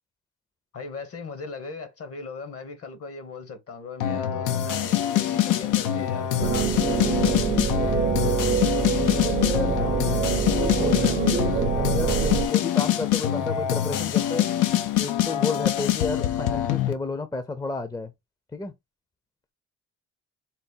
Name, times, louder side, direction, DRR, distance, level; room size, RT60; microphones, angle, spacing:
voice 1, 0.7-7.4, left 4 dB, 50° left, 1.1 m, -38 dB
sound 1, 4.0-16.9, left 11 dB, 90° left, 0.6 m, -24 dB
sound 2, 6.4-12.5, right 7 dB, 35° right, 0.5 m, -25 dB
voice 2, 8.1-8.8 9.2-10.1 10.4-14.5 15.0-18.1 18.5-18.7, left 3 dB, 10° left, 0.5 m, -32 dB
4.0 x 2.1 x 3.8 m
cardioid pair, 90°, 30 cm